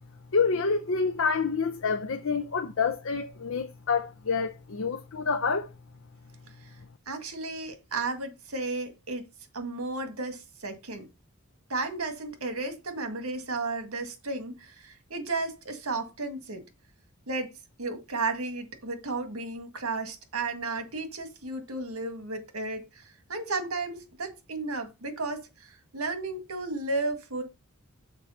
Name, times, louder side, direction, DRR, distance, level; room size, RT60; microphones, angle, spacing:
voice 1, 0.3-5.7, left 5 dB, 65° left, 0.7 m, -27 dB
voice 2, 7.1-9.3 9.5-11.1 11.7-16.6 17.3-17.5 17.8-23.0 23.3-27.4, right 3 dB, 80° right, 1.9 m, -33 dB
6.6 x 4.5 x 5.7 m
head